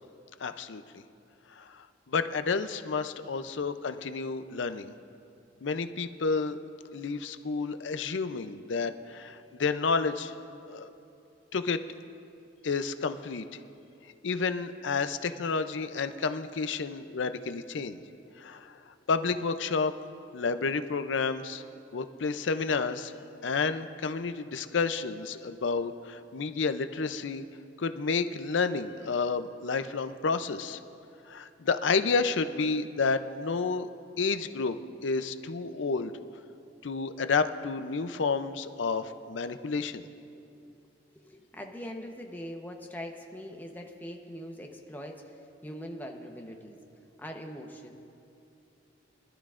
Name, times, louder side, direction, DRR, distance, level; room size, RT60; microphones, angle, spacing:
voice 1, 0.4-0.8 1.6-4.9 5.6-6.6 6.9-10.3 10.7-10.9 11.5-11.8 12.6-13.4 14.2-18.0 18.4-18.7 19.1-19.9 20.3-21.6 21.9-23.1 23.4-27.4 27.8-30.8 31.3-33.9 34.2-34.8 35.0-36.1 36.8-40.0, left 4 dB, 70° left, 10 dB, 0.5 m, -30 dB
voice 2, 41.1-46.8 47.2-48.0, equal, 10° left, 2 dB, 0.9 m, -42 dB
23.5 x 12.0 x 2.5 m, 2.7 s
head